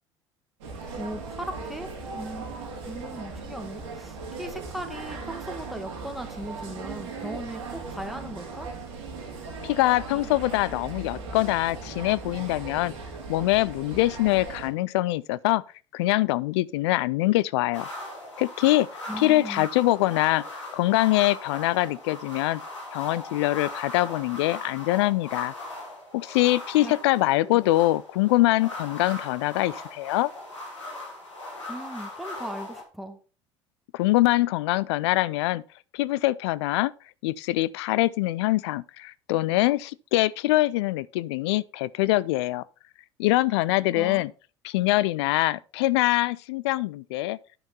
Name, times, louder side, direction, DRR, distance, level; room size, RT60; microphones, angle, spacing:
sound 1, 0.6-14.7, right 4 dB, 70° right, 2.1 m, -38 dB
voice 1, 1.0-2.6 2.9-8.7 19.1-19.7 26.8-27.0 27.4-27.6 31.7-33.2 43.9-44.3 44.8-44.9, equal, ahead, 1.9 m, -38 dB
voice 2, 9.6-12.9 13.3-15.6 15.9-17.9 18.4-18.9 19.2-22.6 22.9-25.5 26.1-30.3 33.9-35.6 35.9-36.9 37.2-42.6 43.2-44.3 44.6-47.4, left 18 dB, 65° left, 0.4 m, -24 dB
sound 2, 17.7-32.8, left 2 dB, 90° left, 2.7 m, -39 dB
10.0 x 5.7 x 4.2 m
figure-of-eight pair, 65°, 15 cm